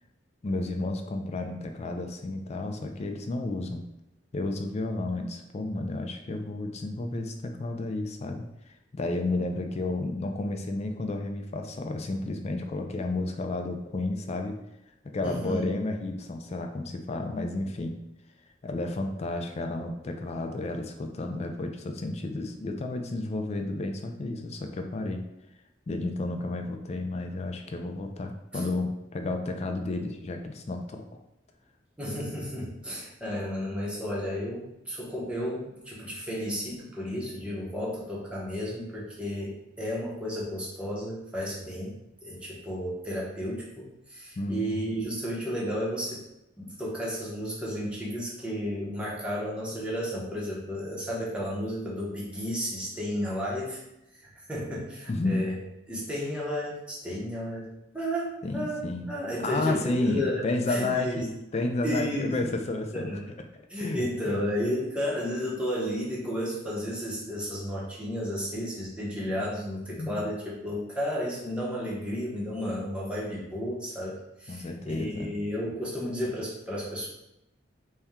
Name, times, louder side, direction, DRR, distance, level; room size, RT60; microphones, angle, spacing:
voice 1, 0.4-3.8 4.3-14.6 15.1-18.0 18.6-25.2 25.9-31.0 44.4-44.8 55.1-55.5 58.4-59.1 59.4-63.1 63.5-64.4 69.3-69.4 70.0-70.3 74.5-75.3, left 2 dB, 35° left, 5 dB, 0.4 m, -32 dB
voice 2, 15.2-15.7 28.5-28.6 32.0-46.2 46.6-53.8 54.2-55.5 55.9-60.4 60.7-61.3 61.8-62.3 62.9-63.3 63.7-77.1, equal, 5° right, -5 dB, 0.8 m, -33 dB
4.2 x 2.2 x 3.5 m, 0.86 s
head